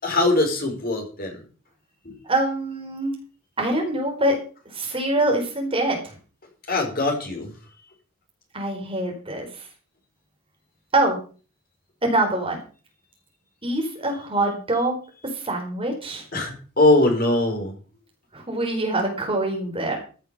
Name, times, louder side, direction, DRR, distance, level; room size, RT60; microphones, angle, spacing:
voice 1, 0.0-1.4 2.0-2.2 6.7-7.5 16.3-17.7, left 2 dB, 45° left, 3 dB, 4.3 m, -21 dB
voice 2, 2.2-3.1 3.6-4.4 4.7-6.2 8.5-9.6 10.9-11.2 12.0-12.6 13.6-15.0 15.3-16.2 18.3-20.0, right 2 dB, 25° right, 1 dB, 4.2 m, -24 dB
14.5 x 7.3 x 6.7 m, 0.38 s
head